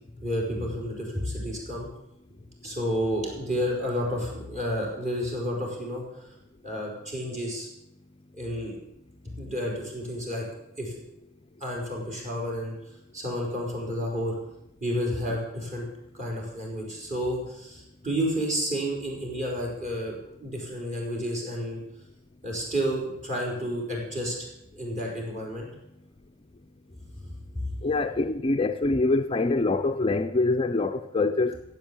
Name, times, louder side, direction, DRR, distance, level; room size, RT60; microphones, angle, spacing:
voice 1, 0.2-1.9 2.6-6.3 6.6-7.7 8.3-8.8 9.2-10.4 10.8-11.0 11.6-12.7 13.1-14.3 14.8-15.9 16.1-21.8 22.4-24.3 24.7-25.7 27.5-27.7, equal, 35° right, 5.0 m, -31 dB
voice 2, 27.8-31.6, left 3 dB, 25° left, 0.4 m, -25 dB
15.5 x 8.1 x 8.7 m
head